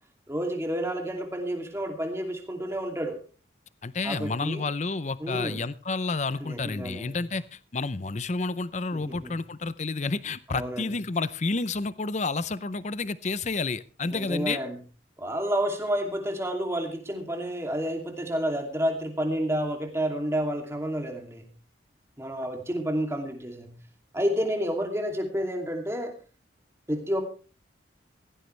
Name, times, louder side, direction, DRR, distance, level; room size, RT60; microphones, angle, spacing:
voice 1, 0.3-3.2 4.0-4.6 5.2-5.6 6.4-7.3 8.9-9.4 10.5-10.9 14.1-14.8 15.2-21.5 22.2-23.8 24.1-26.1 26.9-27.2, equal, 15° right, 3 dB, 2.7 m, -30 dB
voice 2, 3.8-14.6, left 3 dB, 40° left, 16 dB, 0.6 m, -30 dB
17.0 x 15.5 x 3.3 m, 0.36 s
head